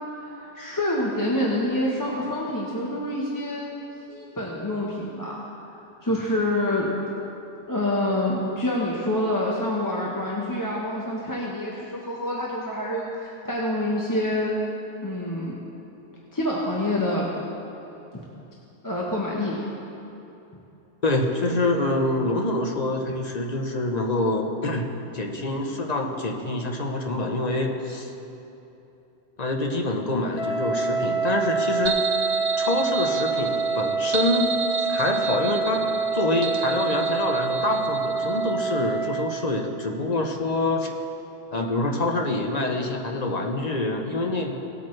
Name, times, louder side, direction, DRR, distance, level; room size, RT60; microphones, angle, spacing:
voice 1, 0.2-3.7 4.1-5.5 6.0-6.9 7.7-14.6 15.0-15.6 16.3-17.3 18.8-19.6, left 1 dB, 20° left, -4 dB, 1.0 m, -27 dB
voice 2, 21.0-24.9 25.1-28.1 29.4-32.0 32.6-35.8 36.1-40.9 41.5-44.6, left 2 dB, 40° left, 2 dB, 0.9 m, -26 dB
Wind instrument woodwind instrument, 30.3-39.2, right 5 dB, 65° left, 1.2 m, -26 dB
sound 1, 31.9-38.5, right 5 dB, 55° right, 0.8 m, -32 dB
18.0 x 8.7 x 3.2 m, 2.9 s
omnidirectional pair, 1.1 m